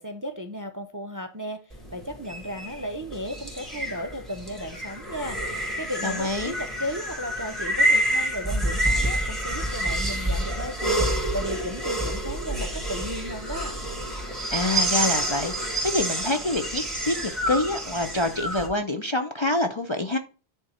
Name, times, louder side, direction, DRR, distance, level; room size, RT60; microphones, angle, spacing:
voice 1, 0.0-13.8, equal, 25° right, 0.5 m, -35 dB
sound 1, 1.7-18.7, right 1 dB, ahead, 2.4 m, -28 dB
voice 2, 6.0-6.5 14.5-20.2, left 2 dB, 35° left, 0.5 m, -26 dB
9.8 x 3.7 x 4.2 m
omnidirectional pair, 1.1 m